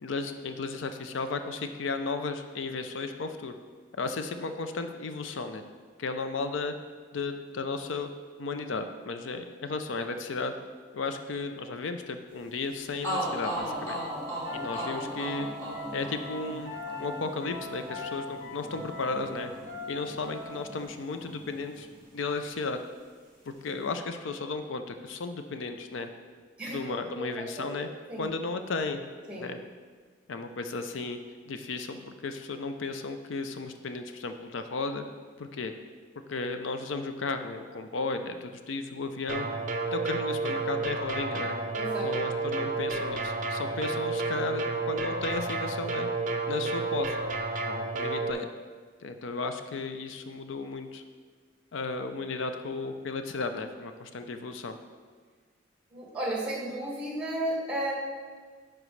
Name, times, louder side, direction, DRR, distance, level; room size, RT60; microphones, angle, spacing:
voice 1, 0.0-3.5 4.0-5.6 6.0-6.7 7.1-8.1 8.4-10.5 10.9-14.0 14.5-15.5 15.9-16.7 17.0-19.5 19.9-21.9 22.1-22.8 23.4-26.1 26.7-27.9 28.2-29.0 29.4-29.6 30.3-31.2 31.5-35.0 35.4-35.7 36.3-39.5 39.9-41.6 42.0-46.1 46.5-47.2 47.7-48.5 49.0-51.0 51.7-54.7, left 3 dB, 85° left, 8 dB, 0.5 m, -34 dB
sound 1, 12.6-12.7 13.0-20.9 21.2-22.3, equal, 15° left, 2.4 m, -37 dB
sound 2, 13.6-20.8, left 2 dB, 35° left, 1.9 m, -41 dB
voice 2, 26.6-27.3 27.6-27.7 28.1-28.2 29.3-29.5 41.7-42.1 55.9-57.9, right 1 dB, 5° right, -4 dB, 1.9 m, -33 dB
sound 3, 39.3-48.3, right 3 dB, 40° right, 0.6 m, -31 dB
10.0 x 5.9 x 3.2 m, 1.5 s
head